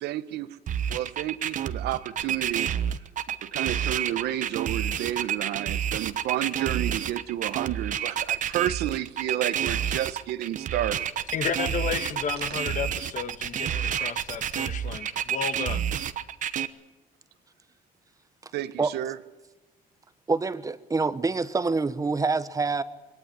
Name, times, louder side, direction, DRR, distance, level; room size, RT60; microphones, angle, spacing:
voice 1, 0.0-0.5 0.9-2.7 3.3-11.1 15.1-15.2 18.5-19.2, right 13 dB, 80° right, 1.0 m, -31 dB
sound 1, 0.7-16.7, right 9 dB, 50° right, 1.1 m, -29 dB
voice 2, 11.3-15.8, left 7 dB, 50° left, 1.6 m, -32 dB
voice 3, 20.3-22.8, right 4 dB, 20° right, 1.1 m, -26 dB
22.0 x 18.5 x 9.4 m
cardioid pair, 110°, 17 cm